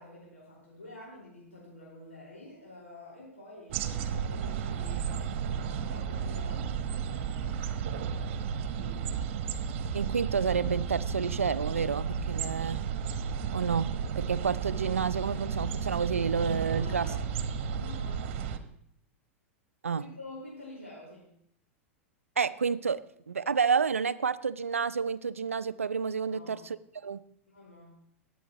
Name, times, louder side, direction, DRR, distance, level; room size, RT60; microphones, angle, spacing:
voice 1, 0.0-6.7 7.1-8.2 8.6-9.1 16.7-17.3 17.8-18.3 19.9-21.3 26.3-26.7 27.5-28.0, left 2 dB, 90° left, -5 dB, 4.7 m, -49 dB
sound 1, 3.7-18.6, right 7 dB, 55° right, 1.1 m, -33 dB
voice 2, 9.9-12.8 13.5-17.1 19.8-20.0 22.4-23.0 23.3-27.2, right 6 dB, 90° right, 15 dB, 0.5 m, -30 dB
20.5 x 8.6 x 3.0 m, 0.70 s
hypercardioid pair, 95°, 7 cm